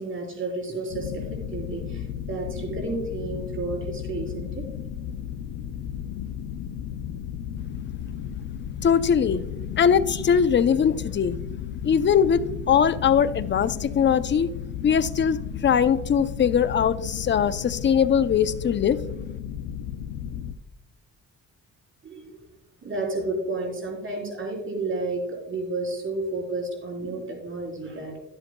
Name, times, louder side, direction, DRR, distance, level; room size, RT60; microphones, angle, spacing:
voice 1, 0.0-4.7 22.0-22.3 22.8-28.2, right 2 dB, 40° right, 0 dB, 3.8 m, -31 dB
sound 1, 0.9-20.5, left 9 dB, 90° left, 0.6 m, -34 dB
voice 2, 8.8-9.4 9.8-11.4 11.8-14.5 14.8-19.0, left 7 dB, 40° left, 13 dB, 0.6 m, -21 dB
11.5 x 10.5 x 2.2 m, 0.87 s
cardioid pair, 90°, 30 cm